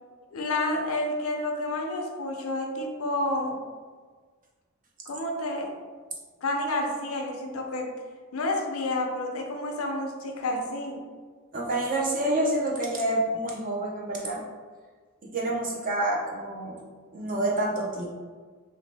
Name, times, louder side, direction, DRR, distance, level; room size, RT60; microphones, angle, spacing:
voice 1, 0.3-3.6 5.1-5.8 6.4-7.9 8.3-11.0, left 1 dB, 70° left, 2 dB, 0.5 m, -30 dB
voice 2, 11.5-14.4 15.3-16.8 17.1-18.1, right 1 dB, 40° right, -3 dB, 0.7 m, -28 dB
3.0 x 2.8 x 3.3 m, 1.5 s
head